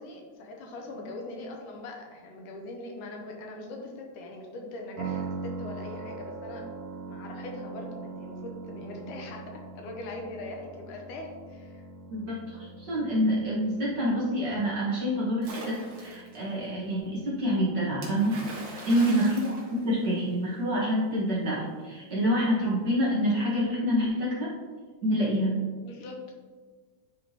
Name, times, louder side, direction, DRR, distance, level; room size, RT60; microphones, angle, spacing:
voice 1, 0.0-6.7 7.1-11.9 18.7-19.1 25.1-25.4 25.8-26.2, left 2 dB, 75° left, 1 dB, 2.4 m, -41 dB
sound 1, 5.0-18.8, right 4 dB, 85° right, 2.4 m, -42 dB
voice 2, 12.1-18.4 18.8-24.5 25.0-25.6, equal, 40° right, -7 dB, 1.7 m, -27 dB
Splash splatter, 15.4-16.4 18.0-20.5, right 2 dB, 65° right, 2.8 m, -41 dB
10.0 x 5.0 x 3.0 m, 1.5 s
omnidirectional pair, 3.7 m